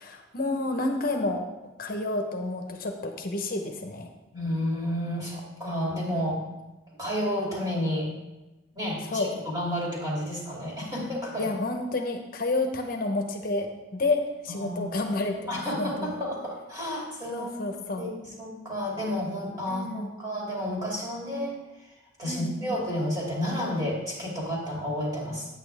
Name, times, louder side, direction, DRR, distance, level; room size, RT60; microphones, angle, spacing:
voice 1, 0.0-1.4 1.8-4.1 9.1-9.3 11.4-13.7 13.9-16.1 17.3-18.1 19.7-20.1 22.2-22.7, left 2 dB, 50° left, 4 dB, 0.9 m, -30 dB
voice 2, 4.3-6.4 7.0-8.1 8.7-11.5 14.5-15.0 15.5-17.5 18.0-21.9 22.2-25.5, equal, 20° right, -4 dB, 2.6 m, -31 dB
9.3 x 8.6 x 3.5 m, 1.0 s
head